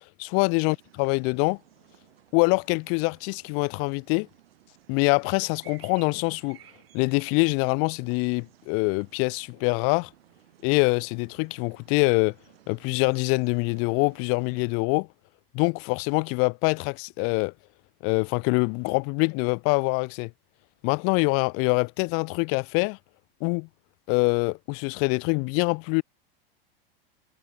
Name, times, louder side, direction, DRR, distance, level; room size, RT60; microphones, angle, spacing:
voice 1, 0.2-1.6 2.3-4.3 4.9-6.6 6.9-10.1 10.6-12.3 12.7-15.1 15.5-17.5 18.0-20.3 20.8-23.0 23.4-23.7 24.1-26.0, left 34 dB, 50° left, 0.7 m, -24 dB
sound 1, 0.6-14.8, right 14 dB, 80° right, 7.6 m, -57 dB
hypercardioid pair, 105°, 29 cm